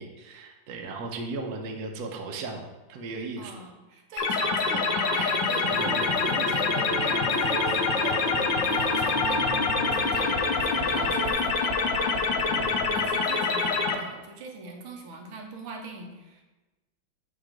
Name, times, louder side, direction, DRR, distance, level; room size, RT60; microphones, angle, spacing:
voice 1, 0.0-3.5 12.5-13.1, right 3 dB, 65° right, 2 dB, 1.1 m, -36 dB
voice 2, 3.4-9.5 9.9-16.4, right 4 dB, 85° right, 2 dB, 1.7 m, -40 dB
sound 1, 4.2-13.9, left 5 dB, 70° left, 1.2 m, -26 dB
sound 2, 5.7-11.3, right 2 dB, 15° right, 1.5 m, -34 dB
7.3 x 3.0 x 5.0 m, 1.1 s
omnidirectional pair, 2.3 m